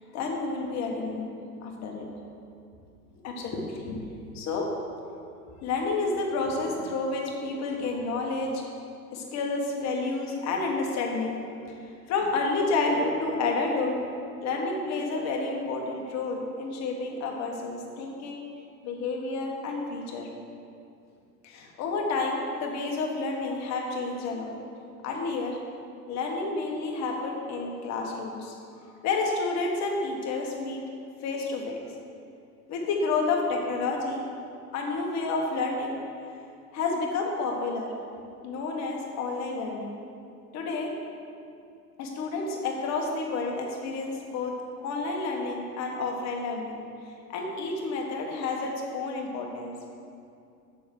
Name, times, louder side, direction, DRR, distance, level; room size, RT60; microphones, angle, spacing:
voice 1, 0.1-1.3 1.6-2.0 3.2-4.0 4.3-4.7 5.6-8.6 9.1-11.4 11.7-11.8 12.1-13.9 14.4-18.4 18.8-20.3 21.4-24.5 25.0-25.5 26.1-28.5 29.0-30.8 31.2-31.8 32.7-34.2 34.7-36.0 36.7-37.9 38.4-40.0 40.5-40.9 42.0-44.5 44.8-49.7, left 3 dB, 35° left, 0 dB, 1.6 m, -30 dB
7.0 x 6.1 x 6.4 m, 2.5 s
figure-of-eight pair, 90°, 47 cm